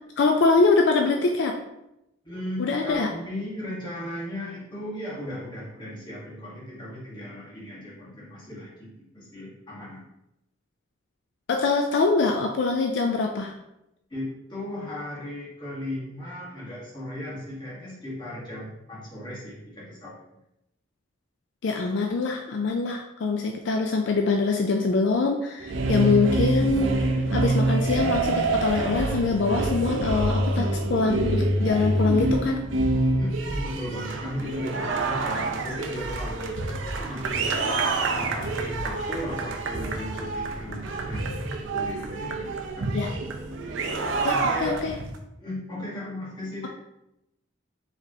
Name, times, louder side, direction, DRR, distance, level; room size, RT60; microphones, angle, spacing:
voice 1, 0.2-1.5 2.6-3.1 11.5-13.5 21.6-27.0 27.3-32.6 42.9-43.1 44.2-44.9, left 4 dB, 65° left, 3 dB, 0.4 m, -24 dB
voice 2, 2.2-10.0 14.1-20.2 33.1-43.6 44.0-44.8 45.4-46.7, left 1 dB, 25° left, -7 dB, 1.5 m, -36 dB
sound 1, 25.6-45.2, right 2 dB, 70° right, 0.6 m, -27 dB
4.9 x 3.3 x 2.8 m, 0.87 s
head